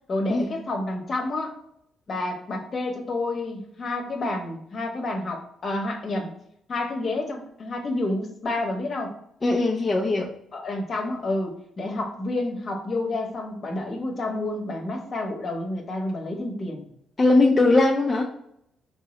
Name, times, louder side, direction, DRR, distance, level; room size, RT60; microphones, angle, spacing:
voice 1, 0.1-1.5 2.1-6.3 6.7-9.1 10.5-16.9, left 2 dB, 45° left, 2 dB, 0.9 m, -29 dB
voice 2, 9.4-10.3 17.2-18.3, left 2 dB, 25° left, 0 dB, 0.4 m, -20 dB
3.7 x 2.0 x 3.7 m, 0.75 s
cardioid pair, 90°, 0 cm